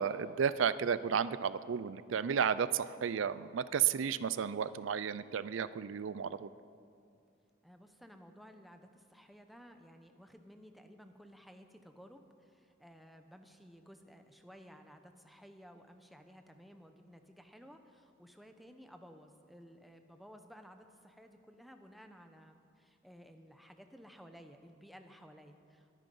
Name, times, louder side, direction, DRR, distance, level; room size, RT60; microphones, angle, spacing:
voice 1, 0.0-6.5, right 7 dB, 90° right, 16 dB, 0.4 m, -33 dB
voice 2, 7.6-25.9, equal, ahead, 6 dB, 0.8 m, -56 dB
22.5 x 9.2 x 5.4 m, 2.4 s
head